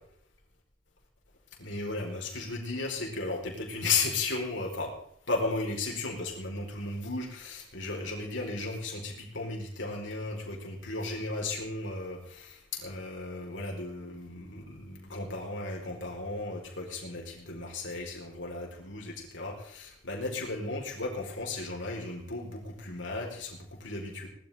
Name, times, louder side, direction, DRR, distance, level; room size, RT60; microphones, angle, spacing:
voice 1, 1.6-4.9 5.3-24.3, left 3 dB, 80° left, -1 dB, 4.3 m, -35 dB
19.5 x 13.0 x 3.6 m, 0.66 s
head